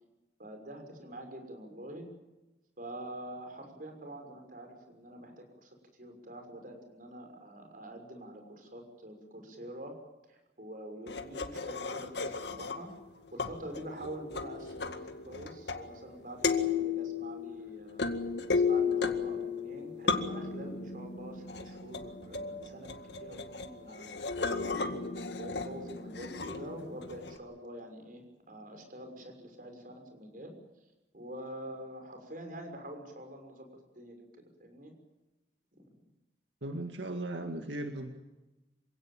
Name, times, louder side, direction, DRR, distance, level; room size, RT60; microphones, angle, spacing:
voice 1, 0.4-2.1 2.8-9.9 10.3-12.9 13.3-15.0 15.3-18.0 18.5-24.1 24.6-30.5 31.1-33.7 33.9-34.3 34.6-34.9, right 1 dB, 50° right, 5 dB, 6.3 m, -46 dB
sound 1, 11.1-13.0 13.4-16.1 16.4-27.4, left 5 dB, 70° left, 2.0 m, -34 dB
voice 2, 36.6-38.2, right 1 dB, 85° right, 5 dB, 2.1 m, -37 dB
27.0 x 17.0 x 9.0 m, 1.0 s
head